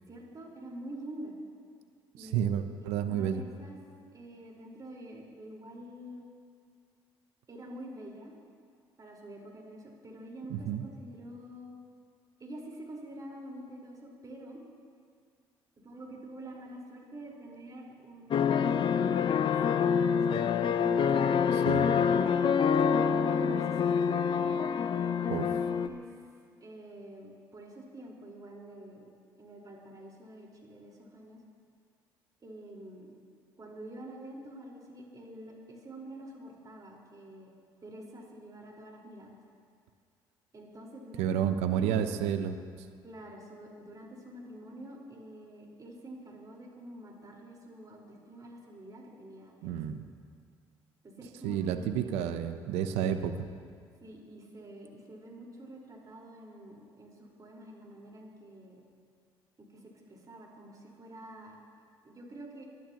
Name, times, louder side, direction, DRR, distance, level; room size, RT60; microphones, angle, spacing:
voice 1, 0.1-1.3 2.2-3.8 4.1-6.2 7.5-8.3 9.0-11.7 12.4-14.6 15.8-18.8 19.2-21.9 23.2-24.1 25.2-25.4 25.8-26.2 26.6-29.1 29.4-31.4 32.4-33.2 33.6-37.5 37.8-39.4 40.5-41.3 41.7-42.1 43.0-49.8 51.0-52.1 53.0-53.2 54.0-58.8 59.6-59.8 60.1-61.6 62.0-62.6, right 1 dB, 35° right, -2 dB, 4.6 m, -47 dB
voice 2, 2.2-3.4 10.5-10.8 21.5-21.9 25.3-25.5 41.2-42.9 49.6-50.0 51.4-53.3, right 9 dB, 80° right, 9 dB, 0.8 m, -30 dB
sound 1, 18.3-25.9, left 7 dB, 50° left, 0.7 m, -26 dB
27.5 x 11.5 x 3.0 m, 2.1 s
hypercardioid pair, 60°, 11 cm